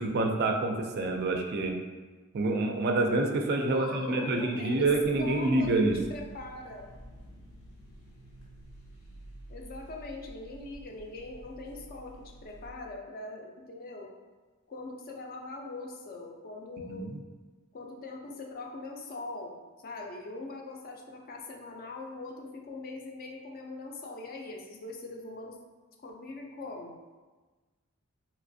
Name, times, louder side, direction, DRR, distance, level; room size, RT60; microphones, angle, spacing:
voice 1, 0.0-1.7 2.3-6.0 16.9-17.2, right 2 dB, 50° right, 3 dB, 0.4 m, -27 dB
voice 2, 3.6-4.9 5.2-5.7 6.1-6.9 9.5-14.1 14.7-17.1 17.7-25.6 26.0-27.0, left 2 dB, 45° left, 1 dB, 0.4 m, -42 dB
sound 1, 4.8-12.7, right 1 dB, 85° left, 0.8 m, -50 dB
3.3 x 3.0 x 2.6 m, 1.3 s
head